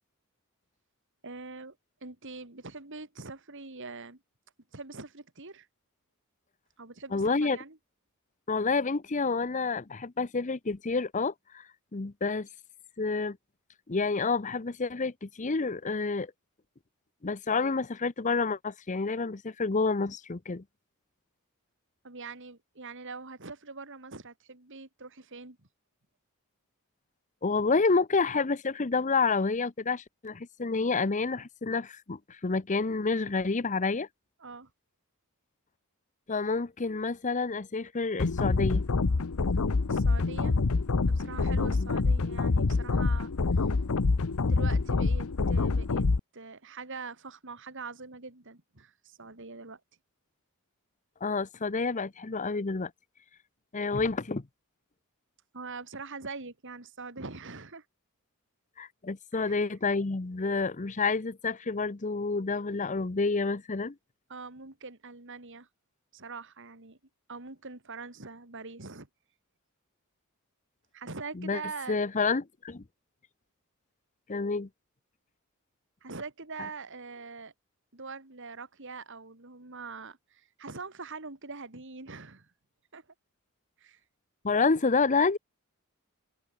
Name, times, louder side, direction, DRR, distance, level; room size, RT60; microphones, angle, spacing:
voice 1, 1.2-4.2 4.7-5.7 6.8-7.8 22.0-25.6 34.4-34.7 39.9-40.6 41.1-43.3 44.4-46.1 46.3-49.8 55.5-57.8 59.3-59.6 64.3-65.7 66.1-67.0 67.3-69.1 70.9-72.0 76.0-77.5 77.9-82.5 82.9-83.0 83.8-84.0, right 4 dB, 60° right, 3.0 m, -43 dB
voice 2, 7.1-7.6 8.5-12.5 13.0-13.4 13.9-16.3 17.2-20.6 27.4-34.1 36.3-38.8 41.8-41.9 51.2-52.9 53.7-54.5 58.8-64.0 71.3-71.6 71.9-72.8 74.3-74.7 84.4-85.4, left 4 dB, 35° left, 0.7 m, -29 dB
sound 1, 38.2-46.2, left 3 dB, 80° left, 0.8 m, -26 dB
head